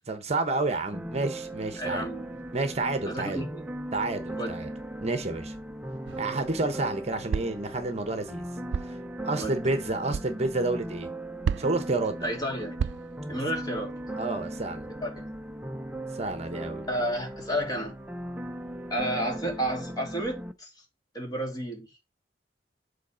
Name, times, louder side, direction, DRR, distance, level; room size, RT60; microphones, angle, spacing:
voice 1, 0.1-2.1 2.5-3.4 3.9-4.7 5.0-5.5 6.2-8.5 8.8-9.0 9.2-11.1 11.6-12.3 13.3-13.4 14.1-14.9 16.1-16.9, right 2 dB, 40° right, 1.0 m, -30 dB
sound 1, 0.9-20.5, right 1 dB, 10° right, 0.6 m, -38 dB
voice 2, 1.8-2.3 3.0-3.7 4.4-4.6 9.4-9.6 12.2-12.8 13.3-13.9 15.0-15.3 16.9-18.0 18.9-20.7 21.1-21.9, equal, 25° left, 2.7 m, -31 dB
sound 2, 6.0-6.4 7.3-7.7 8.7-9.0 10.1-10.3 11.4-11.9 12.8-13.2, right 6 dB, 85° right, 0.3 m, -31 dB
8.3 x 4.0 x 5.1 m
head